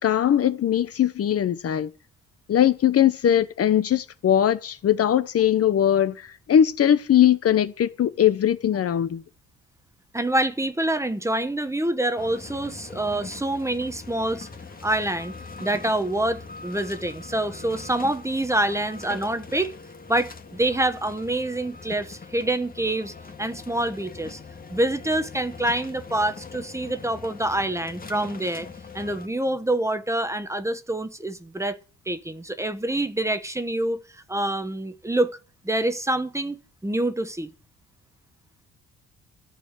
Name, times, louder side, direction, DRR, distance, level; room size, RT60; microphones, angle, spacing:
voice 1, 0.0-1.9 2.5-9.2, left 10 dB, 50° left, 0.9 m, -20 dB
voice 2, 10.1-14.5 14.8-15.3 15.6-19.7 20.1-24.4 24.7-28.7 28.9-31.8 32.1-35.4 35.6-37.5, right 1 dB, 10° right, 1.1 m, -26 dB
sound 1, 12.2-29.3, left 4 dB, 30° left, 1.9 m, -42 dB
14.0 x 5.1 x 8.2 m
cardioid pair, 90°, 30 cm